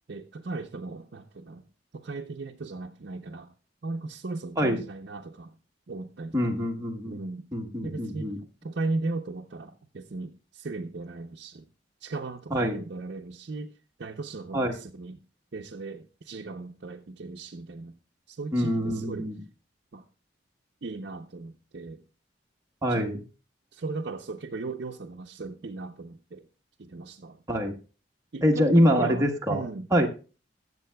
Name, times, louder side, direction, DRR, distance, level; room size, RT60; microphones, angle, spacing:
voice 1, 0.1-1.6 1.9-3.5 3.8-5.6 5.9-6.6 7.1-7.5 7.8-11.7 12.0-13.7 14.0-15.2 15.5-18.0 18.3-19.3 19.9-20.0 20.8-22.0 22.9-23.1 23.7-26.4 26.8-27.4 28.3-29.9, right 3 dB, 60° right, 0.6 m, -37 dB
voice 2, 6.3-7.2 7.5-8.4 12.5-12.8 14.5-14.7 18.5-19.4 22.8-23.2 27.5-27.7 28.4-29.6 29.9-30.1, equal, 15° right, 1.1 m, -24 dB
21.0 x 7.4 x 2.2 m
head